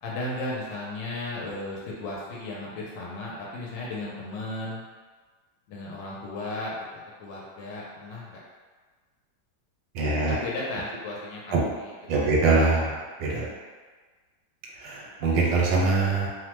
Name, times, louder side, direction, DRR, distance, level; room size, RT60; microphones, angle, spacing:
voice 1, 0.0-4.8 5.7-8.4 10.3-11.9, left 2 dB, 80° left, -5 dB, 1.3 m, -35 dB
voice 2, 9.9-10.4 11.5-11.6 12.1-13.5 14.8-16.3, right 3 dB, 85° right, -3 dB, 1.4 m, -23 dB
3.2 x 2.1 x 2.9 m, 1.4 s
omnidirectional pair, 2.0 m